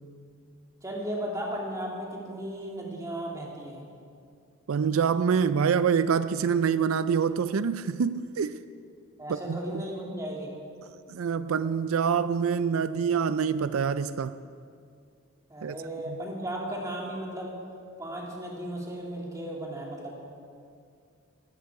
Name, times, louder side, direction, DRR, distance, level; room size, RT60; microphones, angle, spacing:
voice 1, 0.8-3.8 9.2-10.5 15.5-17.5 18.0-20.3, right 1 dB, 15° right, -2 dB, 2.6 m, -35 dB
voice 2, 4.7-8.5 9.3-9.8 11.1-14.3 15.6-15.8 16.1-16.2, right 6 dB, 85° right, 13 dB, 0.4 m, -26 dB
18.5 x 14.5 x 4.8 m, 2.3 s
head